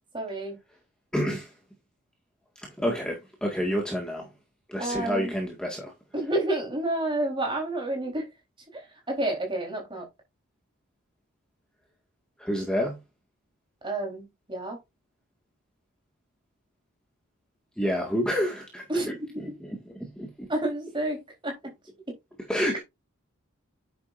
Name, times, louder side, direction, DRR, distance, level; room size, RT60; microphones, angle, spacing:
voice 1, 0.1-0.6 4.8-5.3 6.1-8.3 8.7-8.8 9.1-10.0 13.8-14.8 18.9-19.6 20.5-21.5, right 1 dB, 25° right, 3.8 m, -29 dB
voice 2, 1.1-1.5 2.8-4.3 4.7-5.9 12.4-13.0 17.8-18.8 19.4-20.5 22.5-22.8, equal, 5° left, 1.9 m, -29 dB
9.6 x 7.7 x 2.6 m
head